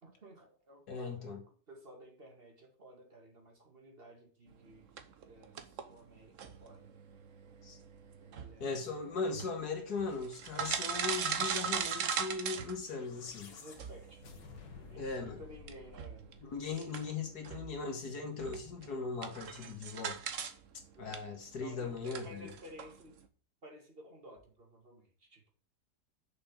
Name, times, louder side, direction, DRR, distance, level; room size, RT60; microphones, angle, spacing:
voice 1, 0.0-4.9 5.2-6.9 8.2-8.9 13.5-14.4 14.8-16.3 21.0-21.2 21.5-23.2 23.6-25.5, equal, 35° right, 2.2 m, -54 dB
voice 2, 0.9-1.4 7.6-7.8 8.6-13.5 15.0-15.4 16.4-20.2 21.0-22.5, left 4 dB, 60° left, 2.3 m, -39 dB
sound 1, 5.0-13.3 13.8-20.6 20.8-23.3, right 7 dB, 55° right, 1.1 m, -40 dB
sound 2, 12.7-17.1, left 7 dB, 85° left, 1.9 m, -54 dB
6.6 x 5.6 x 7.1 m
omnidirectional pair, 1.9 m